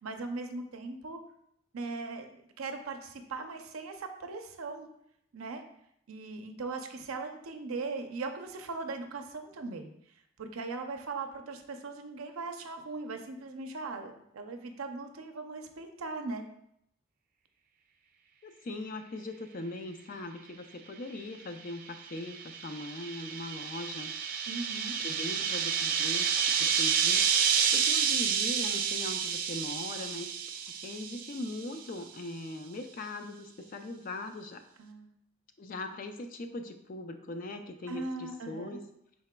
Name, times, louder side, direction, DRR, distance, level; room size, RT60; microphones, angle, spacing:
voice 1, 0.0-1.2 1.7-4.9 5.3-5.6 6.1-9.9 10.4-16.4 24.5-25.0 34.8-35.1 37.9-38.8, right 3 dB, 85° right, 6 dB, 0.6 m, -39 dB
voice 2, 18.4-24.1 25.0-34.6 35.6-38.8, left 2 dB, 40° left, 7 dB, 0.4 m, -40 dB
sound 1, 21.9-31.7, right 7 dB, 40° right, 0.3 m, -30 dB
5.7 x 4.0 x 2.2 m, 0.75 s
head